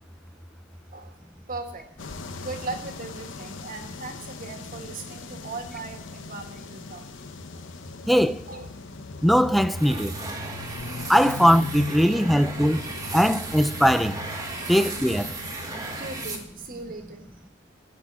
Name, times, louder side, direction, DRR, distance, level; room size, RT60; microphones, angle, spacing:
voice 1, 0.9-1.2 1.5-1.9 2.4-7.1 7.5-7.7 8.5-8.7 12.0-12.3 12.8-13.2 14.5-14.8 15.5-17.3, right 3 dB, 50° right, 1.7 m, -39 dB
sound 1, 2.0-16.4, left 4 dB, 80° left, 0.8 m, -39 dB
voice 2, 8.1-8.5 9.2-10.2 11.1-14.2 14.7-15.3, equal, ahead, 0.4 m, -20 dB
sound 2, 9.7-16.9, right 3 dB, 20° right, 1.5 m, -36 dB
10.0 x 6.1 x 8.8 m
head